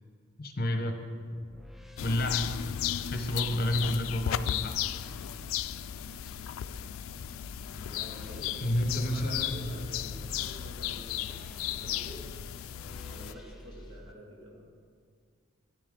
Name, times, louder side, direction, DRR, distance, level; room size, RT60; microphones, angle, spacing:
voice 1, 0.4-1.0 2.0-2.5 3.0-4.8 8.6-9.7, left 1 dB, 50° left, 5 dB, 0.9 m, -30 dB
sound 1, 1.3-14.1, equal, ahead, 0.4 m, -49 dB
sound 2, 2.0-13.3, left 11 dB, 90° left, 0.3 m, -35 dB
sound 3, 2.7-14.0, left 1 dB, 20° left, 0.7 m, -55 dB
voice 2, 7.8-12.3 13.1-14.7, equal, 90° right, -1 dB, 2.0 m, -48 dB
13.0 x 9.0 x 3.7 m, 2.1 s
head